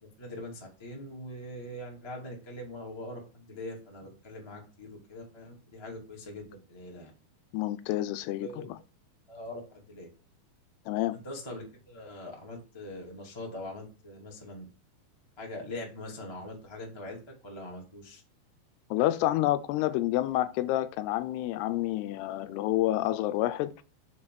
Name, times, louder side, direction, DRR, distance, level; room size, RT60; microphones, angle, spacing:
voice 1, 0.0-7.1 8.4-8.6 9.3-10.1 11.1-14.6 15.4-18.2, left 1 dB, 30° left, 0.5 m, -42 dB
voice 2, 7.5-8.8 10.9-11.2 18.9-23.7, left 15 dB, 90° left, 2.6 m, -28 dB
6.5 x 3.1 x 5.9 m
omnidirectional pair, 4.6 m